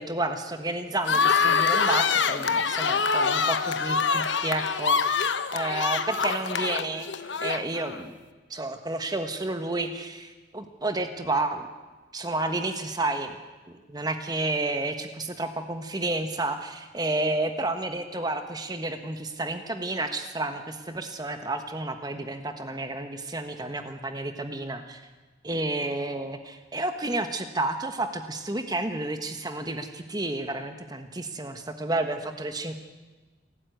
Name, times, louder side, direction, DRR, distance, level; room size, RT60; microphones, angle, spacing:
voice 1, 0.0-7.1 7.4-8.1 8.5-11.7 12.1-13.4 13.7-25.0 25.4-32.8, right 2 dB, 20° right, 7 dB, 1.4 m, -31 dB
sound 1, 1.0-8.0, left 5 dB, 70° left, 1.1 m, -25 dB
28.0 x 13.0 x 9.3 m, 1.3 s
head